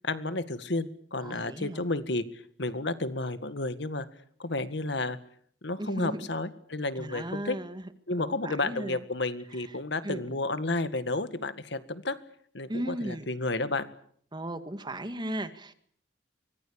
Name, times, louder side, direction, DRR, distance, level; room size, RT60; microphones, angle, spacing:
voice 1, 0.0-2.3 2.6-4.1 4.4-5.2 5.6-7.6 8.1-12.2 12.5-13.9, left 2 dB, 70° left, 12 dB, 1.9 m, -31 dB
voice 2, 1.2-1.8 5.8-6.3 7.0-7.9 8.2-9.0 10.0-10.3 12.7-13.3 14.3-15.9, right 1 dB, 25° right, 10 dB, 1.9 m, -36 dB
24.5 x 20.5 x 8.8 m, 0.62 s
head